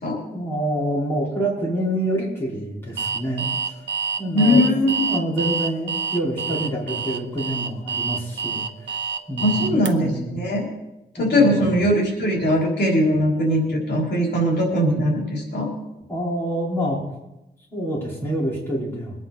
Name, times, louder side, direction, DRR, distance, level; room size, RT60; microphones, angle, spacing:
voice 1, 0.2-3.5 4.2-8.6 9.3-10.3 11.2-11.6 16.1-17.0 17.7-19.1, right 1 dB, 15° left, -6 dB, 4.8 m, -26 dB
Alarm, 3.0-9.9, right 5 dB, 80° right, 0.9 m, -27 dB
voice 2, 4.3-5.1 9.4-10.7 11.2-15.7, equal, 75° left, -1 dB, 3.7 m, -20 dB
22.5 x 9.6 x 4.3 m, 0.92 s
wide cardioid pair, 175°, 18 cm